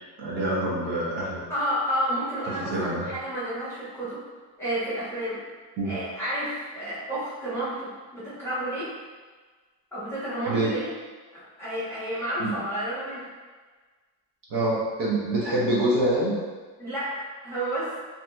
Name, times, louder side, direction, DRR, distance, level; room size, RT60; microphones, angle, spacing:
voice 1, 0.2-1.4 2.4-3.1 5.8-5.9 10.4-10.7 12.4-12.5 14.5-16.3, right 1 dB, 65° right, -5 dB, 0.9 m, -26 dB
voice 2, 1.5-4.2 4.6-5.4 5.8-8.9 9.9-10.9 11.3-13.3 16.8-17.1 17.4-17.9, right 1 dB, 5° left, -11 dB, 1.0 m, -30 dB
2.8 x 2.7 x 2.3 m, 1.4 s
cardioid pair, 145°, 45 cm